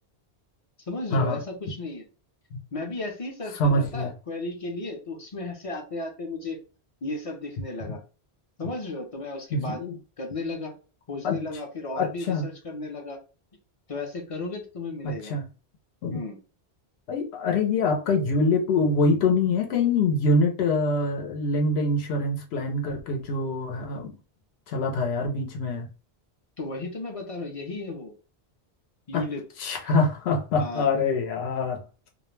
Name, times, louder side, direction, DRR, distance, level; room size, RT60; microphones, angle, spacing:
voice 1, 0.9-2.0 2.7-6.6 7.0-8.0 8.6-9.8 10.2-10.8 11.1-13.2 13.9-15.3 16.1-16.4 26.6-28.1 29.1-29.4 30.6-30.9, left 2 dB, 40° left, 0.6 m, -34 dB
voice 2, 3.6-4.1 7.9-8.0 9.5-10.0 11.2-11.4 12.0-12.5 15.0-15.4 16.0-16.2 17.1-24.1 24.7-25.9 29.1-29.2 29.6-32.1, left 2 dB, 80° left, 0.9 m, -25 dB
2.3 x 2.1 x 3.1 m
omnidirectional pair, 1.1 m